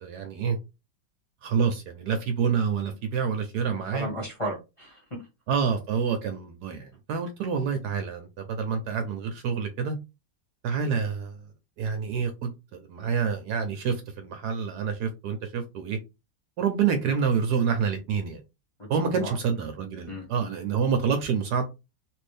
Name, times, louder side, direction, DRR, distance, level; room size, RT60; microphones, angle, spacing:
voice 1, 0.0-0.6 1.4-4.1 5.5-10.0 10.6-11.4 11.8-16.0 16.6-18.4 18.9-21.7, right 6 dB, 70° right, 1.0 m, -27 dB
voice 2, 3.7-5.3 18.8-19.4 20.1-20.3, right 1 dB, 20° left, 0.9 m, -35 dB
3.2 x 2.6 x 3.2 m
omnidirectional pair, 2.0 m